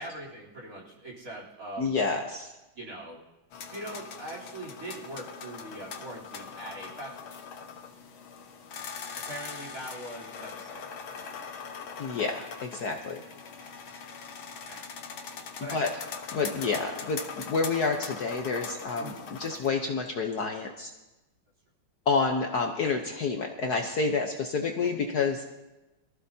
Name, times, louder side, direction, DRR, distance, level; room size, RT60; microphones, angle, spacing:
voice 1, 0.0-2.1 2.8-3.2 3.6-7.1 9.3-11.0 11.3-11.4 13.2-13.3 14.7-14.9 15.6-15.9 19.0-19.2 24.8-24.9, right 1 dB, 40° right, -2 dB, 3.9 m, -41 dB
voice 2, 1.8-2.5 12.0-13.2 15.7-15.9 16.3-20.9 22.1-25.5, left 4 dB, 55° left, 3 dB, 1.3 m, -29 dB
sound 1, 3.5-19.7, left 6 dB, 75° left, 2.0 m, -41 dB
23.0 x 15.0 x 2.8 m, 1.0 s
omnidirectional pair, 2.3 m